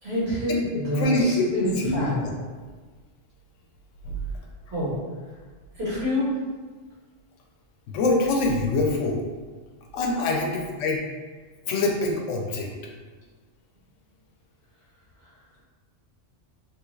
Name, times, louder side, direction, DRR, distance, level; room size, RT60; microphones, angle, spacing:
voice 1, 0.0-2.2 4.7-4.9 5.8-6.3, left 1 dB, 60° right, -10 dB, 1.8 m, -27 dB
voice 2, 1.0-2.1 4.0-4.2 7.9-9.2 9.9-11.0 11.7-12.7, left 2 dB, 85° left, 0 dB, 0.9 m, -24 dB
3.3 x 2.3 x 3.1 m, 1.4 s
omnidirectional pair, 1.2 m